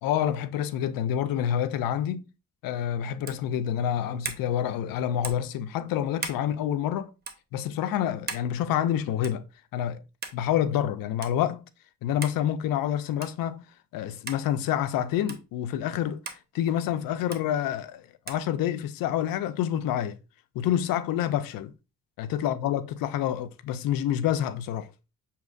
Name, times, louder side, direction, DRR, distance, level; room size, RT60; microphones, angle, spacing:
voice 1, 0.0-2.2 2.6-7.1 7.5-9.4 9.7-10.0 10.3-11.7 12.0-13.6 13.9-20.2 20.6-21.7 22.2-24.9, left 10 dB, 90° left, 0.5 m, -28 dB
sound 1, 3.2-3.5 4.2-4.5 5.2-5.5 6.2-6.4 7.2-7.4 8.3-8.5 9.2-9.5 10.2-10.4 11.2-11.3 12.2-12.4 13.2-13.4 14.3-14.4 15.3-15.4 16.2-16.4 17.3-17.4 18.3-18.4, right 4 dB, 30° right, 0.6 m, -37 dB
6.2 x 2.9 x 2.4 m
cardioid pair, 125°, 33 cm